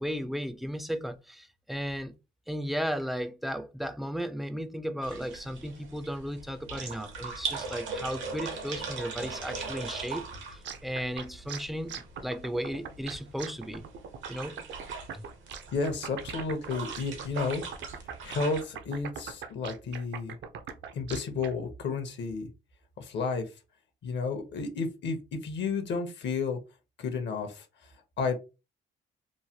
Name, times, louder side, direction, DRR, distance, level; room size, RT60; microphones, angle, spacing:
voice 1, 0.0-2.1 2.5-13.8 14.3-14.6 15.1-15.2, equal, ahead, 0.3 m, -35 dB
sound 1, 5.0-18.6, right 4 dB, 80° right, 0.9 m, -40 dB
sound 2, 10.6-21.5, right 7 dB, 65° right, 0.5 m, -41 dB
voice 2, 15.7-18.0 18.2-20.4 20.9-22.5 23.0-23.4 24.0-26.6 27.0-27.6 28.2-28.4, left 4 dB, 60° left, 0.8 m, -32 dB
3.1 x 2.2 x 2.7 m
cardioid pair, 90°, 20 cm